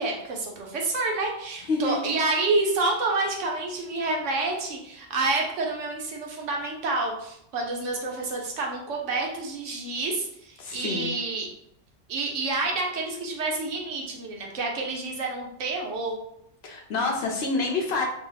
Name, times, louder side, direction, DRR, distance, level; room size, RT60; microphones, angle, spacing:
voice 1, 0.0-11.5 12.1-16.1, right 3 dB, 75° right, 0 dB, 1.1 m, -28 dB
voice 2, 10.6-11.1 16.6-18.1, left 3 dB, 65° left, 0 dB, 0.8 m, -27 dB
2.8 x 2.0 x 3.9 m, 0.76 s
omnidirectional pair, 1.3 m